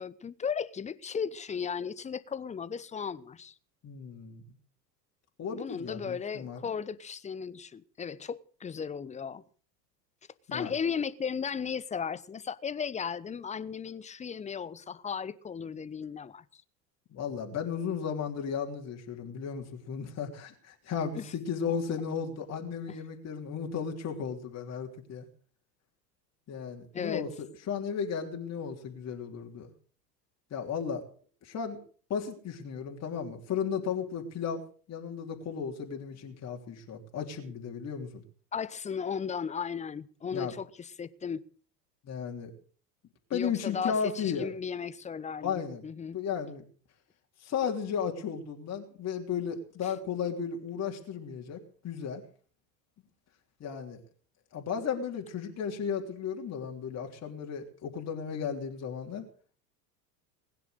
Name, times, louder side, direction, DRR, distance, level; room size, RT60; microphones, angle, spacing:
voice 1, 0.0-3.5 5.5-9.4 10.5-16.6 21.2-21.3 22.9-23.0 26.9-27.3 38.5-41.4 43.3-46.2 49.8-49.9, left 6 dB, 15° left, 0.8 m, -36 dB
voice 2, 3.8-4.4 5.4-6.6 10.5-10.7 17.1-25.3 26.5-27.3 27.7-29.7 30.5-31.0 31.4-31.8 32.1-34.6 34.9-38.2 40.3-40.5 42.0-42.5 43.3-44.5 45.4-45.8 46.1-46.6 47.4-52.2 53.6-54.0 54.5-59.3, left 7 dB, 30° left, 3.2 m, -34 dB
20.5 x 10.5 x 6.6 m
figure-of-eight pair, 80°, 50 cm